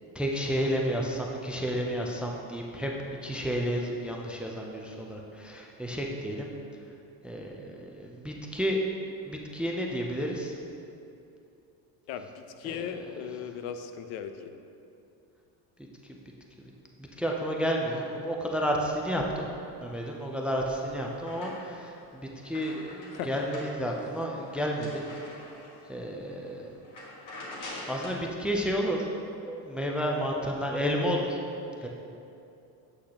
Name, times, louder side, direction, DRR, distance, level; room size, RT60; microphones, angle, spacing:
voice 1, 0.2-2.9 3.2-6.5 7.2-8.8 9.3-10.5 12.6-12.9 16.1-16.2 17.2-19.5 19.8-25.0 25.9-26.8 27.9-29.1 29.5-31.4 31.8-31.9, equal, 5° right, 0 dB, 0.3 m, -31 dB
voice 2, 12.1-14.5 22.6-22.8 23.1-23.4, left 8 dB, 75° left, 9 dB, 0.6 m, -38 dB
sound 1, 20.3-21.9 22.3-25.9 26.3-26.5 26.8-28.3, left 1 dB, 50° left, 1.6 m, -45 dB
7.9 x 6.2 x 2.9 m, 2.7 s
cardioid pair, 135°, 38 cm